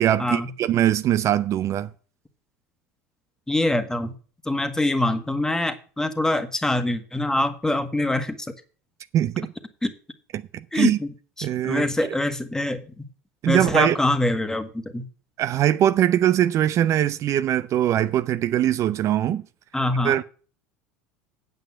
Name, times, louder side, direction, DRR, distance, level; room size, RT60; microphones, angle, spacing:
voice 1, 0.0-1.9 9.1-9.5 10.3-11.0 11.4-11.9 13.4-14.0 15.4-19.4 20.0-20.2, right 11 dB, 45° right, 0.6 m, -21 dB
voice 2, 3.5-4.1 4.5-8.5 9.8-9.9 10.7-11.1 11.4-13.0 13.5-15.1 19.7-20.1, left 1 dB, 10° left, 1.6 m, -24 dB
9.1 x 8.0 x 5.9 m
hypercardioid pair, 75°, 7 cm